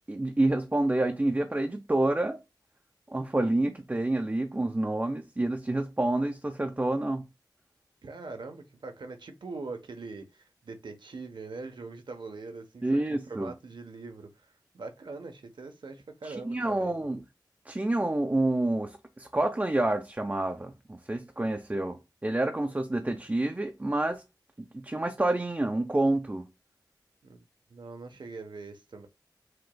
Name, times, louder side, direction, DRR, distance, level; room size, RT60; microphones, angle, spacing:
voice 1, 0.1-2.4 3.1-7.2 12.8-13.5 16.2-17.2 17.7-24.2 24.6-26.5, right 2 dB, 20° right, 0.6 m, -28 dB
voice 2, 8.0-12.8 13.1-17.1 27.2-27.4 27.7-29.1, right 3 dB, 80° right, 0.9 m, -42 dB
7.7 x 3.0 x 2.2 m
wide cardioid pair, 65°, 8 cm